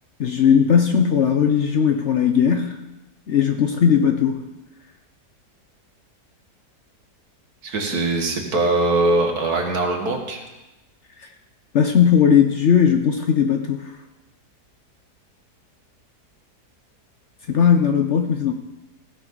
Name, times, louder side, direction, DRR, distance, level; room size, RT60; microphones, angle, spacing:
voice 1, 0.2-2.8 3.3-4.4 11.7-13.9 17.5-18.5, left 7 dB, 55° left, 6 dB, 0.9 m, -18 dB
voice 2, 7.6-10.4, right 2 dB, 65° right, 2 dB, 2.2 m, -21 dB
16.0 x 10.5 x 4.0 m, 1.0 s
omnidirectional pair, 1.8 m